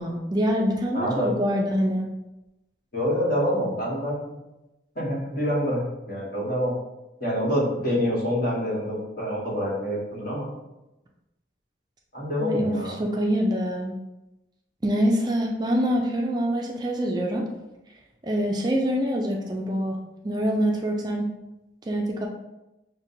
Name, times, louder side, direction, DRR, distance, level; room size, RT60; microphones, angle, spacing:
voice 1, 0.0-2.1 12.4-13.9 14.8-17.5 18.2-20.0 20.2-21.3 21.9-22.3, equal, 25° right, 1 dB, 0.4 m, -25 dB
voice 2, 0.9-1.3 2.9-4.3 4.9-6.7 7.2-10.5 12.1-12.9, equal, 55° left, -5 dB, 1.5 m, -26 dB
6.2 x 2.2 x 2.7 m, 0.96 s
head